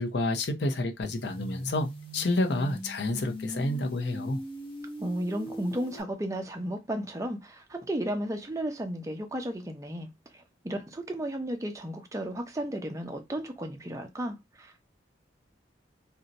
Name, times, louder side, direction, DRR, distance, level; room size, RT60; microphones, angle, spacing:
voice 1, 0.0-1.9 2.1-4.4, left 2 dB, 65° left, 0.6 m, -29 dB
sound 1, 1.0-6.0, equal, 30° left, 0.7 m, -40 dB
voice 2, 5.0-14.9, right 1 dB, 15° right, 0.5 m, -34 dB
2.6 x 2.2 x 3.9 m
head